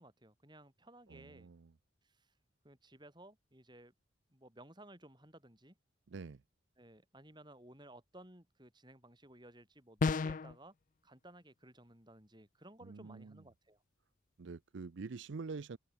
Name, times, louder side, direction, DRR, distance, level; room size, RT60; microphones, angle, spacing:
voice 1, 0.0-1.5 2.0-2.3 2.6-3.9 4.3-5.8 6.8-10.7 11.0-13.8, right 1 dB, 20° right, 6.8 m, -57 dB
voice 2, 1.1-1.7 6.1-6.4 12.8-13.4 14.4-15.8, right 4 dB, 65° right, 0.5 m, -46 dB
sound 1, 10.0-10.5, left 4 dB, 40° left, 0.4 m, -31 dB
open air
head